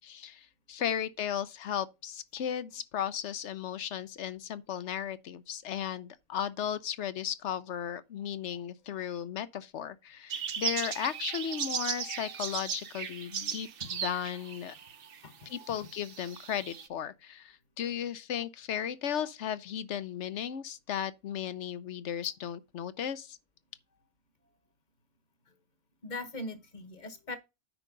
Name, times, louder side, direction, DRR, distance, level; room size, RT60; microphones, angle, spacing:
voice 1, 0.0-14.8 15.5-23.4, left 9 dB, 65° left, 1.0 m, -35 dB
sound 1, 10.3-15.2 15.5-16.9, right 7 dB, 50° right, 0.9 m, -37 dB
voice 2, 15.2-15.8 26.0-27.4, left 2 dB, 35° left, 1.3 m, -41 dB
9.1 x 5.3 x 3.9 m
omnidirectional pair, 1.3 m